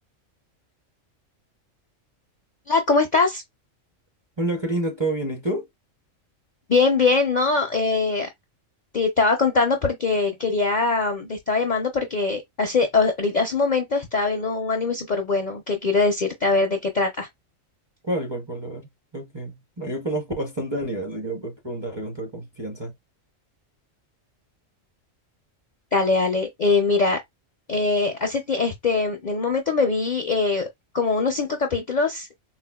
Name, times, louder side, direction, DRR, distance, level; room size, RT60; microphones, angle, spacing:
voice 1, 2.7-3.4 6.7-8.3 8.9-17.3 25.9-27.2 27.7-30.7 30.9-32.4, left 4 dB, 50° left, 0.5 m, -22 dB
voice 2, 4.4-5.7 18.0-22.9, right 1 dB, 25° right, 0.6 m, -29 dB
4.2 x 2.1 x 2.2 m
omnidirectional pair, 1.4 m